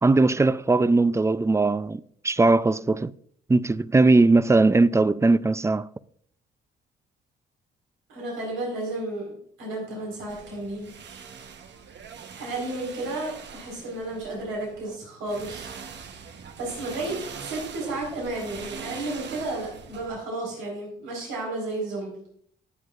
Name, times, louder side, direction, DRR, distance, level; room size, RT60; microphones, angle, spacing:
voice 1, 0.0-3.1 3.5-5.9, right 3 dB, 15° right, 0.4 m, -20 dB
voice 2, 8.1-10.9 12.4-15.7 16.6-22.2, right 2 dB, 90° right, 4.5 m, -32 dB
sound 1, 10.3-15.0 15.3-20.2, right 6 dB, 65° right, 1.1 m, -42 dB
19.5 x 7.6 x 2.5 m
cardioid pair, 90°, 20 cm